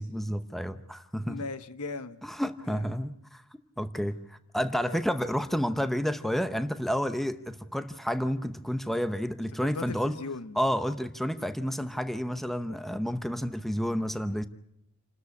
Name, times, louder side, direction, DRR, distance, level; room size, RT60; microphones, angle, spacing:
voice 1, 0.0-1.4 2.2-3.4 3.8-10.2 10.6-14.4, equal, ahead, 0.8 m, -30 dB
voice 2, 1.3-2.3 2.7-2.9 4.8-5.0 9.6-10.6, left 3 dB, 90° left, 1.1 m, -38 dB
28.5 x 13.0 x 8.5 m
head